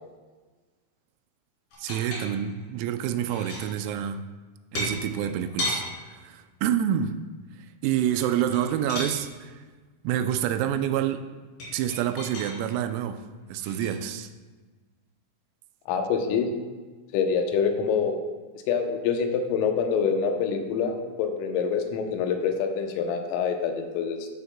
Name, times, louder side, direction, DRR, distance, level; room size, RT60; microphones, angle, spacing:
sound 1, 1.7-2.6 3.1-3.7 4.7-5.8 8.1-9.1 11.6-12.6 13.6-13.9, left 1 dB, 45° left, 4.0 m, -33 dB
voice 1, 1.8-4.2 4.7-7.1 7.8-9.6 10.0-11.2 11.7-13.2 13.5-14.3, right 10 dB, 85° right, 9 dB, 3.3 m, -27 dB
voice 2, 15.9-16.5 17.1-18.2 18.7-24.4, left 6 dB, 80° left, 4 dB, 3.4 m, -26 dB
14.0 x 9.3 x 2.2 m, 1.3 s
omnidirectional pair, 6.0 m